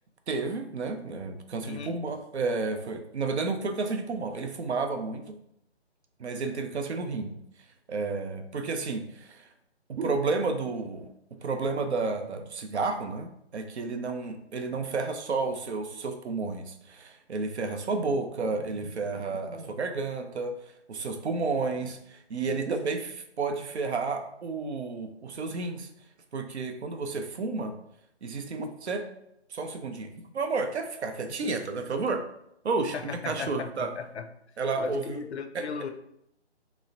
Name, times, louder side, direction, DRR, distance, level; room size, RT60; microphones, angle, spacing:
voice 1, 0.3-5.4 6.2-7.3 7.9-9.5 9.9-11.1 11.4-20.6 20.9-25.9 26.3-27.7 28.2-29.1 29.5-30.1 30.3-32.2 32.6-32.9 33.3-33.9 34.6-35.2 35.5-35.7, right 4 dB, 75° right, 7 dB, 0.5 m, -31 dB
voice 2, 1.7-2.0 31.4-31.5 32.9-34.3 34.8-35.9, left 5 dB, 70° left, 6 dB, 0.5 m, -37 dB
2.9 x 2.0 x 2.6 m, 0.76 s
figure-of-eight pair, 160°, 34 cm